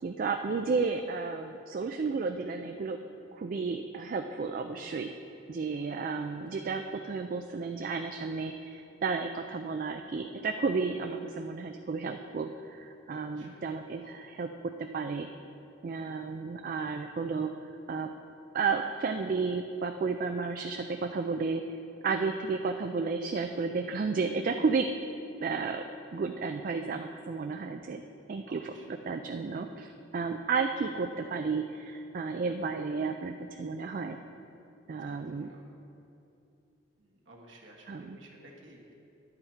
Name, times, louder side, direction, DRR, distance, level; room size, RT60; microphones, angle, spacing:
voice 1, 0.0-3.0 3.3-5.1 5.5-15.3 15.8-17.5 17.9-18.1 18.5-21.6 22.0-24.9 25.4-25.8 26.1-28.0 28.3-34.2 34.9-35.5 37.9-38.2, right 4 dB, 45° right, 6 dB, 0.3 m, -32 dB
voice 2, 13.1-13.6 28.5-29.0 35.0-35.6 37.0-38.9, right 1 dB, 70° right, -2 dB, 1.3 m, -54 dB
10.5 x 7.7 x 4.5 m, 2.7 s
head